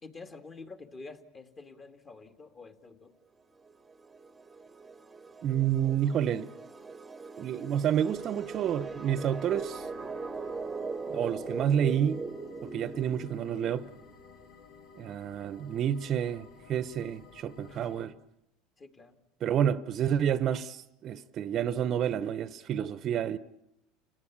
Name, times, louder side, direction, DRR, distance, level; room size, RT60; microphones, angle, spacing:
voice 1, 0.0-3.1 17.7-18.0 18.8-19.2, left 3 dB, 25° left, 2.4 m, -48 dB
sound 1, 3.7-14.2, right 4 dB, 15° right, 1.2 m, -40 dB
voice 2, 5.4-6.5 7.4-9.9 11.1-12.2 12.6-13.9 15.0-18.1 19.4-23.4, right 9 dB, 45° right, 0.9 m, -29 dB
sound 2, 8.1-18.1, left 5 dB, 70° left, 2.9 m, -54 dB
29.5 x 17.5 x 8.6 m
supercardioid pair, 120°, 0 cm